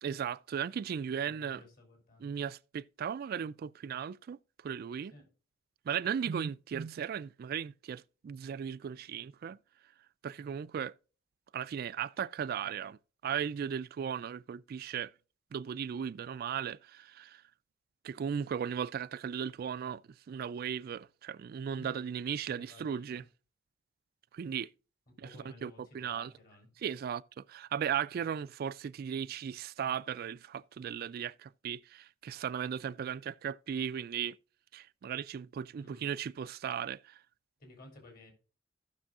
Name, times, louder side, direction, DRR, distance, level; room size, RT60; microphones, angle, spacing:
voice 1, 0.0-1.6 2.2-5.1 5.9-9.6 10.2-11.0 11.5-13.0 13.2-15.1 15.5-17.4 18.0-20.0 20.3-23.2 24.3-24.7 25.2-26.3 26.8-34.4 34.7-37.2, right 8 dB, 50° right, 0.3 m, -37 dB
voice 2, 1.2-2.3 5.1-5.3 21.8-22.2 22.5-23.3 25.1-26.7 35.8-36.2 37.6-38.3, left 1 dB, 50° left, 3.3 m, -55 dB
16.5 x 6.1 x 2.4 m
head